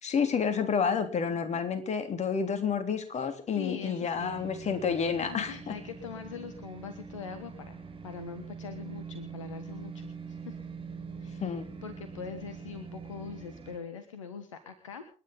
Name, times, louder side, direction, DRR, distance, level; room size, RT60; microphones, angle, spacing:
voice 1, 0.0-5.8 11.4-11.6, left 6 dB, 45° left, 9 dB, 3.2 m, -29 dB
voice 2, 1.3-1.6 3.1-4.4 5.2-7.8 8.0-10.1 10.4-10.6 11.2-11.5 11.8-15.2, left 6 dB, 80° left, 10 dB, 1.4 m, -43 dB
sound 1, 4.1-13.8, right 5 dB, 35° right, 4.8 m, -44 dB
29.0 x 10.5 x 3.8 m, 0.40 s
figure-of-eight pair, 45°, 16 cm